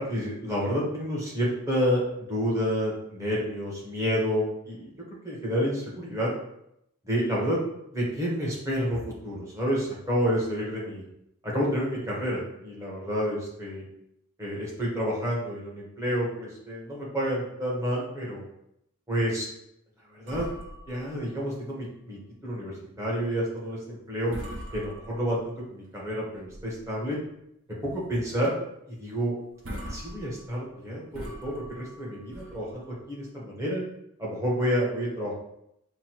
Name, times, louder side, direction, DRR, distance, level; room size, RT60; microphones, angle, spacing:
voice 1, 0.0-4.9 5.2-6.3 7.0-7.6 7.9-11.0 11.4-13.8 14.4-18.4 19.1-19.5 20.1-20.5 20.9-24.3 24.7-27.2 27.8-28.5 28.9-29.3 29.8-33.8 34.2-35.3, equal, 15° right, -5 dB, 1.0 m, -29 dB
sound 1, 20.3-22.1 22.4-22.6 23.1-23.3 23.8-24.0 24.3-25.6 26.1-27.0 27.4-27.5 27.9-28.1 28.4-28.5 29.2-29.3 29.5-33.2, equal, 65° right, 0.7 m, -42 dB
6.0 x 2.2 x 3.0 m, 0.79 s
head